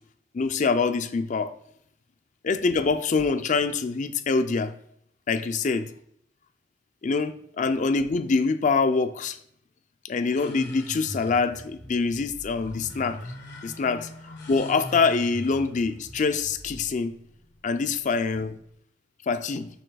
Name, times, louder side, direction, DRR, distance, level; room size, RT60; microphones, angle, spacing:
voice 1, 0.3-1.5 2.4-4.7 5.3-5.9 7.0-9.4 10.0-13.2 13.6-14.1 14.5-17.2 17.6-18.6 19.3-19.7, left 4 dB, 40° left, 0.4 m, -25 dB
sound 1, 10.3-18.7, left 1 dB, 60° left, 1.6 m, -42 dB
6.6 x 6.4 x 2.2 m
head